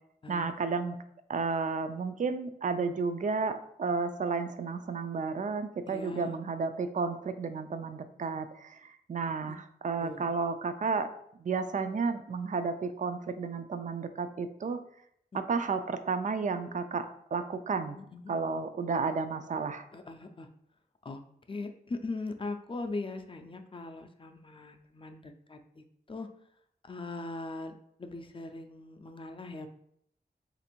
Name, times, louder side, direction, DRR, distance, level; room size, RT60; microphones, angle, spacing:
voice 1, 0.3-1.0 1.3-11.1 11.4-14.8 15.3-18.0 18.3-19.9, right 4 dB, 50° right, 9 dB, 0.4 m, -32 dB
voice 2, 5.9-6.3 9.5-9.6 10.0-10.2 15.5-15.6 17.9-18.4 19.9-20.5 21.0-21.2 21.5-26.3 26.8-29.7, left 3 dB, 30° left, 6 dB, 0.4 m, -40 dB
3.4 x 2.5 x 4.4 m, 0.70 s
wide cardioid pair, 85°, 16 cm